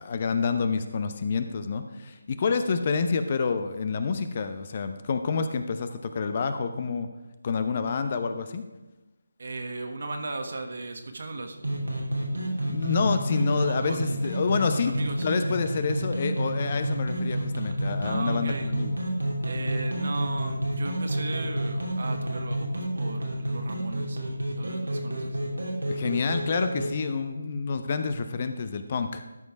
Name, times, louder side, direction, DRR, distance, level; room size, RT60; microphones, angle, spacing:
voice 1, 0.0-7.1 7.4-8.7 12.7-14.9 15.2-18.9 25.9-29.2, left 5 dB, 35° left, 9 dB, 0.8 m, -28 dB
voice 2, 9.4-11.6 13.6-14.2 14.7-15.3 18.0-18.7 19.4-24.2 24.6-25.4, right 3 dB, 55° right, 6 dB, 1.4 m, -36 dB
sound 1, 11.6-26.9, right 1 dB, 90° right, 3.0 m, -30 dB
13.5 x 5.3 x 4.7 m, 1.1 s
figure-of-eight pair, 155°, 0 cm